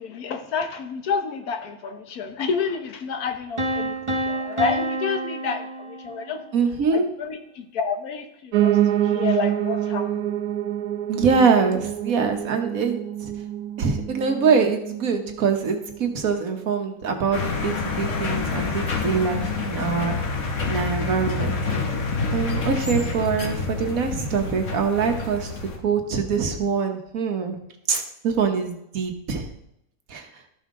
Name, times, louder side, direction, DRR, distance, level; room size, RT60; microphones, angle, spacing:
voice 1, 0.0-6.4 6.9-10.3, left 5 dB, 75° left, 6 dB, 1.5 m, -29 dB
sound 1, 3.6-6.5, right 1 dB, 30° right, 0.6 m, -28 dB
voice 2, 6.5-7.0 11.1-13.3 13.8-20.2 20.7-21.6 22.3-27.6 27.9-29.5 30.1-30.3, right 5 dB, 65° right, 5 dB, 1.5 m, -24 dB
Piano, 8.5-17.6 18.0-19.2 19.5-19.6 19.8-19.9 20.1-20.2 20.8-20.9, right 11 dB, 90° right, 1.2 m, -27 dB
sound 2, 17.3-25.8, left 4 dB, 55° left, 1.5 m, -27 dB
13.0 x 5.7 x 3.7 m, 0.78 s
omnidirectional pair, 1.6 m